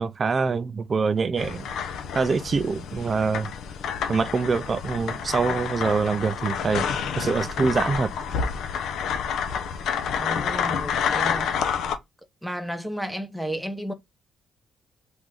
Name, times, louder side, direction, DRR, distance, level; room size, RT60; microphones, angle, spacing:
voice 1, 0.0-1.7 2.1-3.5 4.1-6.8 7.2-8.1, right 4 dB, 40° right, 0.4 m, -24 dB
sound 1, 1.4-12.0, left 7 dB, 75° left, 0.7 m, -29 dB
voice 2, 10.2-11.8 12.4-13.9, equal, ahead, 0.8 m, -33 dB
3.6 x 2.6 x 4.7 m
cardioid pair, 90°, 0 cm